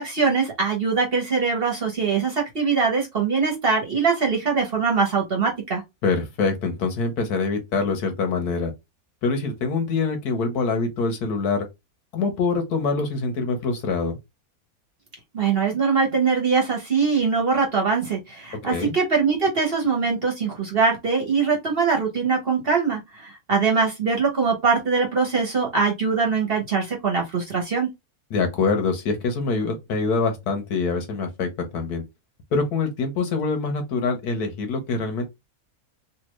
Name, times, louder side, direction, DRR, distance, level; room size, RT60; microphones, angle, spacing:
voice 1, 0.0-5.8 15.3-27.9, right 5 dB, 40° right, 1.1 m, -22 dB
voice 2, 6.0-8.7 9.2-11.7 12.1-14.1 18.6-19.0 28.3-32.0 32.5-35.3, left 4 dB, 85° left, 1.4 m, -25 dB
3.4 x 2.7 x 3.0 m
omnidirectional pair, 1.6 m